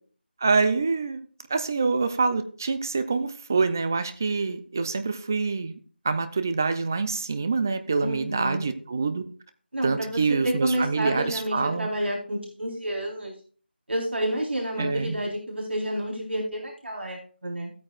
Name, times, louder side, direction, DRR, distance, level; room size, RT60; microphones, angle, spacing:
voice 1, 0.4-1.2 1.5-5.8 6.0-9.2 9.8-11.9 14.8-15.2, right 4 dB, 15° right, 10 dB, 0.4 m, -26 dB
voice 2, 8.0-8.7 9.7-13.3 13.9-17.7, right 1 dB, 80° right, -2 dB, 3.9 m, -30 dB
15.0 x 8.9 x 2.4 m, 0.43 s
figure-of-eight pair, 175°, 6 cm